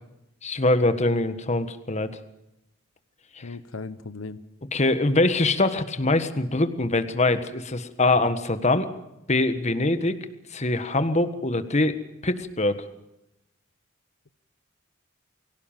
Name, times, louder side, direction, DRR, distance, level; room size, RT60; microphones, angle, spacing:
voice 1, 0.4-2.1 4.7-8.9 9.3-10.2 10.5-12.0 12.2-12.8, left 2 dB, 35° left, 10 dB, 1.5 m, -23 dB
voice 2, 3.4-4.4, left 3 dB, 75° left, 12 dB, 0.9 m, -37 dB
24.0 x 17.0 x 7.4 m, 0.89 s
head